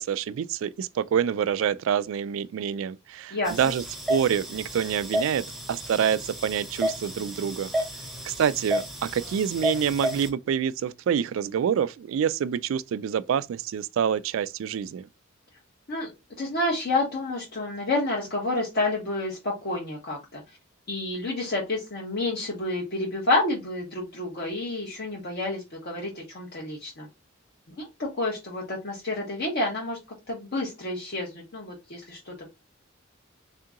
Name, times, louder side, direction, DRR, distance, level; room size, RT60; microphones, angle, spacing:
voice 1, 0.0-3.8 4.1-7.7 8.2-15.1, right 8 dB, 75° right, 0.3 m, -27 dB
sound 1, 3.5-10.3, equal, ahead, 0.7 m, -32 dB
voice 2, 16.4-20.4 20.9-27.1 27.8-30.0 30.3-32.5, left 2 dB, 55° left, 1.0 m, -29 dB
3.6 x 2.8 x 3.6 m
head